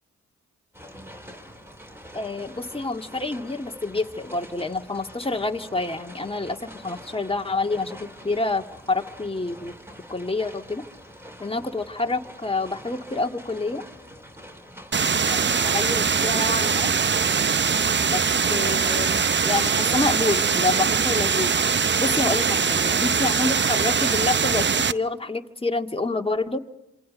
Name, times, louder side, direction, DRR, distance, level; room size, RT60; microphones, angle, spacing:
sound 1, 0.7-17.8, equal, 5° right, 5.9 m, -45 dB
voice 1, 2.1-9.7 10.1-10.8 11.4-13.8 15.3-16.9 18.0-18.2 18.5-21.6 22.0-26.6, left 3 dB, 20° left, 5 dB, 2.1 m, -28 dB
sound 2, 14.9-24.9, right 6 dB, 35° right, 0.8 m, -22 dB
27.0 x 26.5 x 5.3 m, 0.86 s
supercardioid pair, 40°, 31 cm